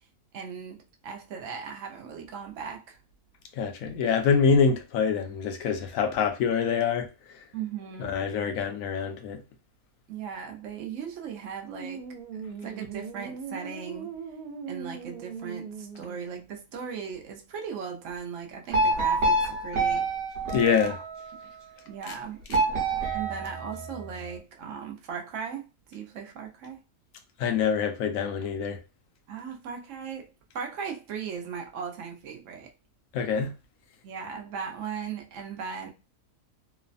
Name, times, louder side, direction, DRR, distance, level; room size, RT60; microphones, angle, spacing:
voice 1, 0.3-3.0 7.5-8.3 10.1-12.1 12.6-14.1 14.7-20.1 20.8-21.0 21.9-22.4 23.1-26.8 29.3-32.7 34.0-35.9, right 7 dB, 65° right, 0.9 m, -38 dB
voice 2, 3.6-7.1 8.0-9.4 20.5-21.0 22.1-22.2 27.4-28.8 33.1-33.5, left 6 dB, 70° left, 1.0 m, -25 dB
sound 1, 11.7-16.5, right 6 dB, 80° right, 1.1 m, -39 dB
sound 2, 18.7-21.4 22.5-24.3, right 2 dB, 50° right, 1.3 m, -27 dB
3.1 x 2.1 x 2.4 m
omnidirectional pair, 1.6 m